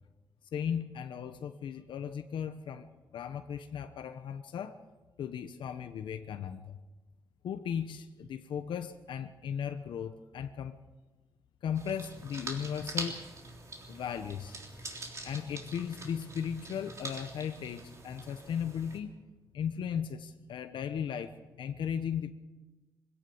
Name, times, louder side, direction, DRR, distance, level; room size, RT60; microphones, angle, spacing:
voice 1, 0.5-2.9 3.1-4.8 5.2-6.8 7.4-10.8 11.6-13.3 13.9-14.6 15.2-19.1 19.5-22.3, left 8 dB, 85° left, 8 dB, 1.0 m, -36 dB
sound 1, 11.7-19.0, right 2 dB, 40° right, 3.5 m, -44 dB
22.0 x 17.0 x 7.1 m, 1.2 s
wide cardioid pair, 120°, 8 cm